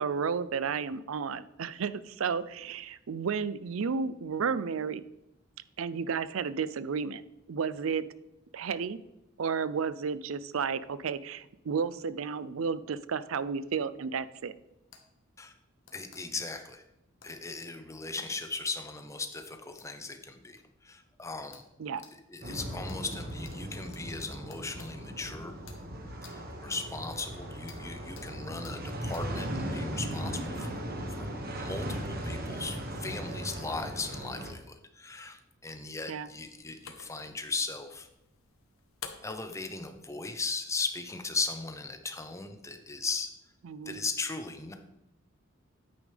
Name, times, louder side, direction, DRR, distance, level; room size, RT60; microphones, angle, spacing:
voice 1, 0.0-5.0 5.8-7.2 7.5-8.0 8.5-9.0 9.4-14.5 21.8-22.0 36.1-36.3 43.6-44.0, right 6 dB, 80° right, 16 dB, 0.5 m, -32 dB
sound 1, 14.9-15.0 15.8-16.2 17.2-17.3 18.7-18.8 19.8-19.9 20.6-20.7 21.5-21.7 22.0-22.1 22.9-23.0 23.4-23.5 23.9-24.9 25.6-25.8 26.2-26.4 26.7-26.8 27.2-27.3 27.7-27.8 28.2-28.3 28.6-28.8 29.1-29.3, left 7 dB, 65° left, 1.4 m, -53 dB
voice 2, 15.9-16.8 17.2-20.6 20.8-21.6 22.3-25.6 26.3-30.8 31.2-38.1 39.2-43.3 43.9-44.7, left 3 dB, 15° left, 7 dB, 0.7 m, -37 dB
sound 2, 22.4-34.5, right 1 dB, 45° right, 1.2 m, -37 dB
sound 3, 36.2-41.2, left 6 dB, 85° left, 1.0 m, -51 dB
9.7 x 8.7 x 3.4 m, 0.90 s
head